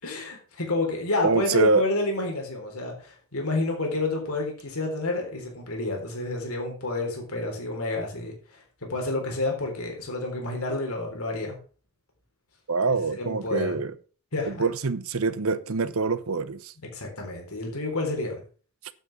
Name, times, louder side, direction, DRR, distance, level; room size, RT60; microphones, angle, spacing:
voice 1, 0.0-11.6 12.9-13.8 14.3-14.6 16.9-18.4, left 2 dB, 90° left, 3.8 m, -29 dB
voice 2, 1.2-1.8 12.7-13.9 14.5-16.7, right 4 dB, 85° right, 0.8 m, -25 dB
8.8 x 8.0 x 6.0 m
head